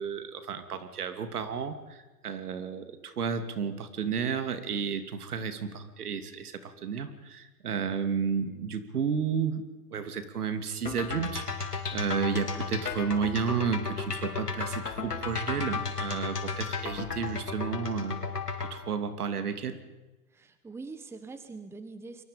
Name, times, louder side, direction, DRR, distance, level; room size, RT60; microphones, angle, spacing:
voice 1, 0.0-18.4 18.7-19.8, right 6 dB, 75° right, 9 dB, 2.9 m, -32 dB
sound 1, 10.9-18.7, left 5 dB, 90° left, 4.3 m, -34 dB
voice 2, 20.3-22.2, right 3 dB, 5° right, 10 dB, 1.2 m, -43 dB
28.0 x 23.5 x 5.3 m, 1.1 s
hypercardioid pair, 130°, 46 cm